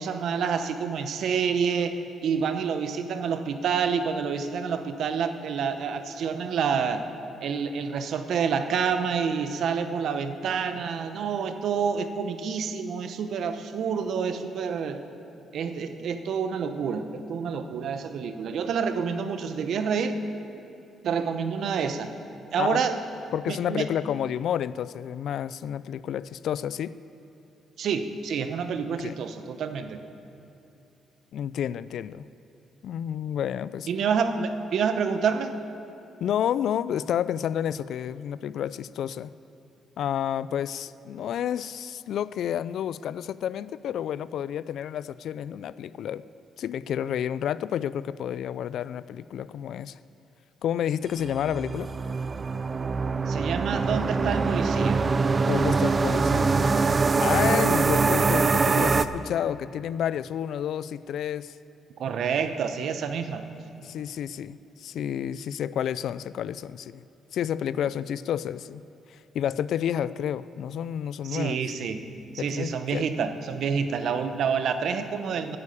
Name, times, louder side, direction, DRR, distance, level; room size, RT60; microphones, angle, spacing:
voice 1, 0.0-7.1 7.4-15.1 15.5-20.2 21.0-22.1 22.5-23.0 23.5-23.9 27.8-30.0 33.9-35.6 53.3-55.0 62.0-63.5 71.2-72.1 72.3-75.6, right 6 dB, 70° right, 9 dB, 0.9 m, -28 dB
voice 2, 23.3-27.0 29.0-29.1 31.3-32.3 32.8-33.9 36.2-39.3 40.0-46.2 46.6-50.0 50.6-51.9 55.5-56.5 57.2-61.5 63.8-67.0 67.3-68.8 69.1-71.6 72.4-73.0, left 9 dB, 70° left, 17 dB, 0.3 m, -30 dB
sound 1, 51.2-59.1, right 4 dB, 35° right, 0.5 m, -23 dB
9.8 x 9.6 x 8.5 m, 2.8 s
cardioid pair, 90°, 0 cm